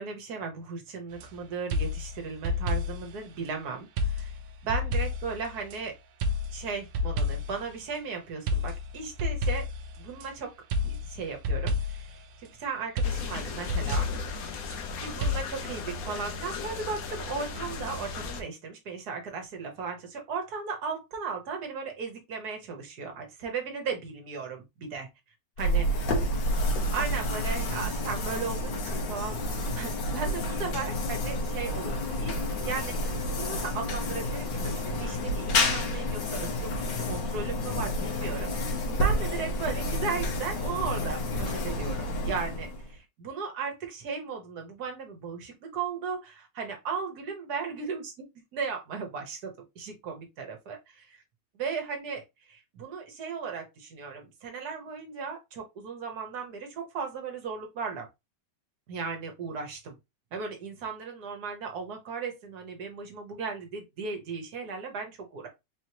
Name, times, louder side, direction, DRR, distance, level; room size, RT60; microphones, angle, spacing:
voice 1, 0.0-4.4 4.6-5.9 6.5-9.7 10.0-10.5 10.8-14.1 15.0-25.1 25.6-26.0 26.9-29.4 29.7-32.4 32.6-36.7 37.0-48.3 48.5-51.2 51.6-52.2 52.5-58.1 58.9-60.0 60.3-65.5, right 5 dB, 60° right, 1.6 m, -36 dB
sound 1, 1.1-1.3 1.7-3.2 4.0-5.8 6.2-7.7 8.5-10.3 10.7-12.2 13.0-14.8 15.2-15.4, left 2 dB, 85° right, 1.4 m, -30 dB
sound 2, 13.0-18.4, left 4 dB, 60° left, 1.1 m, -37 dB
sound 3, 25.6-43.0, left 1 dB, 80° left, 1.6 m, -30 dB
4.1 x 3.1 x 2.8 m
omnidirectional pair, 2.0 m